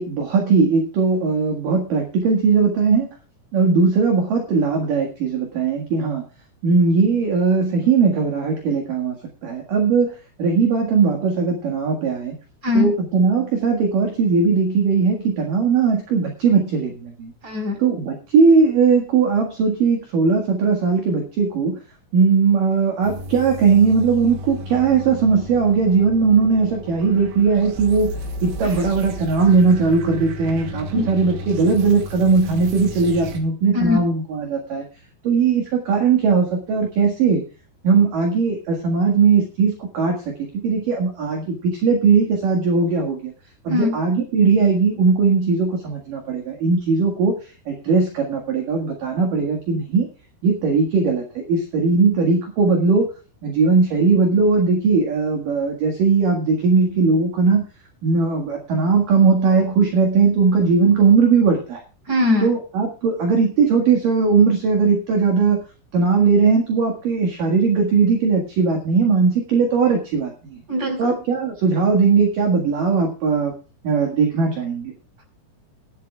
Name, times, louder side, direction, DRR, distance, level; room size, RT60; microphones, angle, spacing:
voice 1, 0.0-3.2 3.5-6.2 6.6-9.2 9.4-12.4 12.7-17.3 17.8-21.8 22.1-28.1 28.4-34.8 35.2-37.4 37.8-43.3 43.6-50.1 50.4-53.1 53.4-57.6 58.0-61.8 62.4-65.6 65.9-70.6 71.0-73.5 73.8-74.9, right 5 dB, 55° right, 2 dB, 2.6 m, -19 dB
voice 2, 17.4-17.7 30.9-31.0 33.7-34.0 43.7-43.9 62.1-62.5 70.7-71.2, left 3 dB, 20° right, 4 dB, 4.0 m, -20 dB
sound 1, 23.0-33.4, equal, 75° right, 4.4 m, -34 dB
19.0 x 11.5 x 2.4 m, 0.35 s
omnidirectional pair, 6.0 m